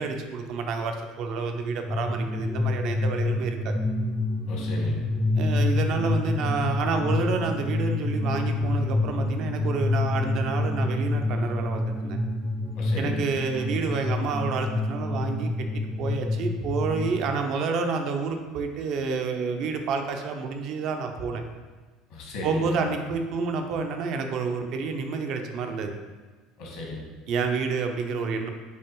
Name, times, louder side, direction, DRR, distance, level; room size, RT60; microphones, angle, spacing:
voice 1, 0.0-3.7 5.3-12.2 13.0-21.4 22.4-25.9 27.3-28.5, right 4 dB, 55° right, 5 dB, 0.6 m, -29 dB
sound 1, 1.9-17.2, left 2 dB, 10° left, 0.5 m, -27 dB
voice 2, 4.5-5.0 12.7-13.2 22.1-22.7 26.6-27.1, left 2 dB, 65° left, -2 dB, 1.4 m, -35 dB
6.9 x 2.6 x 3.0 m, 1.4 s
hypercardioid pair, 70°, 0 cm